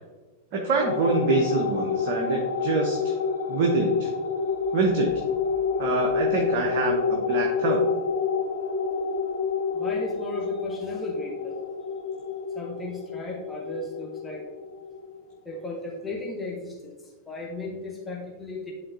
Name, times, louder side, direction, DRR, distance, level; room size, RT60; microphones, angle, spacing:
voice 1, 0.5-3.2 3.5-4.1 4.7-5.1 5.8-7.9, right 4 dB, 45° right, 1 dB, 0.8 m, -25 dB
sound 1, 0.8-15.6, left 5 dB, 65° left, 0.7 m, -28 dB
voice 2, 9.7-11.6 12.5-14.4 15.4-16.9 17.2-18.7, left 2 dB, 5° left, -3 dB, 1.3 m, -35 dB
11.0 x 3.7 x 2.7 m, 1.2 s
figure-of-eight pair, 90°, 0 cm